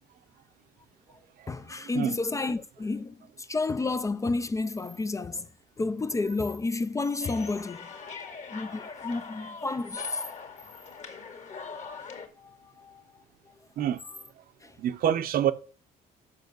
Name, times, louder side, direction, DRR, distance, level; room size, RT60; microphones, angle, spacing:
voice 1, 1.5-5.5 5.8-7.9 8.5-10.2 11.5-11.7 12.4-13.0 14.6-14.7, left 3 dB, 20° left, 0.5 m, -31 dB
sound 1, 7.2-12.3, left 5 dB, 45° left, 1.8 m, -42 dB
voice 2, 14.8-15.5, right 10 dB, 60° right, 0.8 m, -26 dB
6.7 x 5.6 x 6.8 m
cardioid pair, 110°, 17 cm